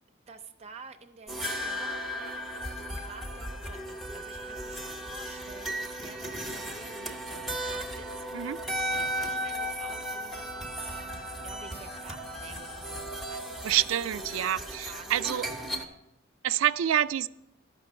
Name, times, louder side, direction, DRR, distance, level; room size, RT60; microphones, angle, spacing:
voice 1, 0.3-8.6 9.0-13.8 14.6-16.0, right 4 dB, 35° right, 0.6 m, -49 dB
sound 1, 1.3-15.9, equal, ahead, 0.9 m, -36 dB
voice 2, 13.6-15.5 16.4-17.3, right 11 dB, 75° right, 0.3 m, -27 dB
11.5 x 6.0 x 6.2 m
head